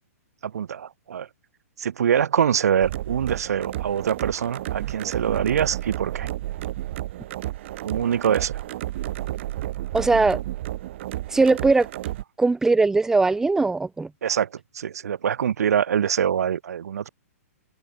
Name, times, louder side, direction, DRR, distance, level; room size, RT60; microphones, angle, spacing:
voice 1, 0.4-1.3 1.8-6.3 7.8-8.6 14.2-14.5 14.7-17.1, right 8 dB, 80° right, 0.7 m, -24 dB
sound 1, 2.8-12.2, right 14 dB, 50° right, 1.7 m, -32 dB
voice 2, 9.9-10.4 11.3-11.9 12.4-14.1, right 3 dB, 5° right, 1.0 m, -20 dB
hypercardioid pair, 145°, 8 cm